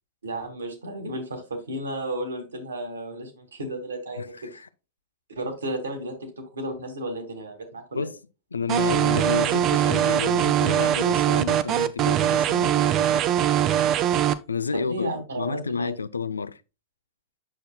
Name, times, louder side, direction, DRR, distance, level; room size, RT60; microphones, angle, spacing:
voice 1, 0.2-4.4 5.3-8.1 14.7-15.9, right 1 dB, 75° right, 1.9 m, -33 dB
voice 2, 4.2-4.7 7.9-8.2 8.5-13.3 14.5-16.6, left 5 dB, 75° left, 0.3 m, -30 dB
sound 1, 8.7-14.3, right 10 dB, 35° right, 0.5 m, -22 dB
8.4 x 6.6 x 2.2 m
figure-of-eight pair, 90°, 0 cm